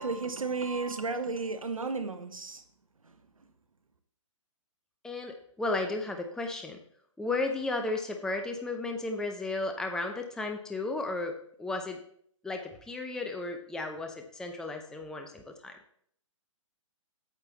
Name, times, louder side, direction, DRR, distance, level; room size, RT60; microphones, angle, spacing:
voice 1, 0.0-2.6 3.0-3.1, right 4 dB, 90° right, 9 dB, 1.2 m, -33 dB
voice 2, 5.0-6.8 7.2-12.0 12.4-15.8, left 2 dB, 5° left, 4 dB, 0.7 m, -34 dB
8.9 x 7.5 x 4.0 m, 0.65 s
hypercardioid pair, 130°, 17 cm